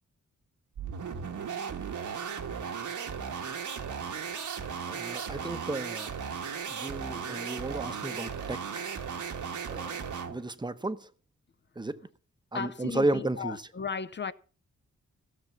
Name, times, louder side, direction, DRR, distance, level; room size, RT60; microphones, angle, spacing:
sound 1, 0.7-10.4, right 6 dB, 75° right, 1.6 m, -36 dB
voice 1, 4.9-6.1 6.7-8.9 9.7-11.1 11.8-12.0 12.5-13.7, right 2 dB, 15° right, 0.8 m, -33 dB
voice 2, 12.5-14.3, left 5 dB, 40° left, 0.6 m, -35 dB
16.0 x 7.0 x 7.0 m
wide cardioid pair, 145°, 30 cm